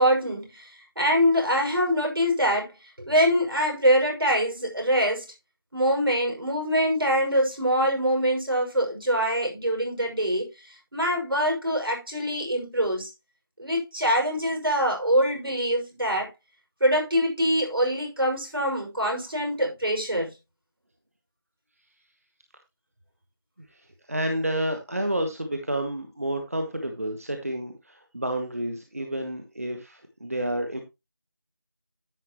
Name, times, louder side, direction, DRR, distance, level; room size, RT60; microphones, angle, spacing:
voice 1, 0.0-2.7 3.1-5.3 5.7-13.1 13.6-16.3 16.8-20.3, equal, 70° right, 6.0 m, -24 dB
voice 2, 23.7-30.8, right 1 dB, 35° right, 1.2 m, -30 dB
10.5 x 8.7 x 3.0 m
figure-of-eight pair, 175°, 13 cm